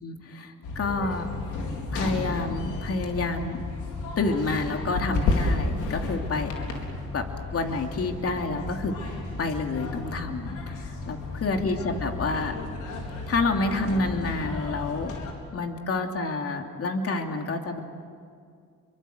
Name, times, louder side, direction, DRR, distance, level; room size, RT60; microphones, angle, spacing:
voice 1, 0.0-1.3 1.9-3.6 4.2-6.5 7.1-7.3 7.5-9.0 9.4-12.6 13.3-15.1 15.5-17.8, left 3 dB, 50° left, 4 dB, 3.0 m, -28 dB
sound 1, 0.6-15.3, left 3 dB, 90° left, 4.4 m, -32 dB
29.0 x 24.0 x 8.0 m, 2.2 s
cardioid pair, 90°, 30 cm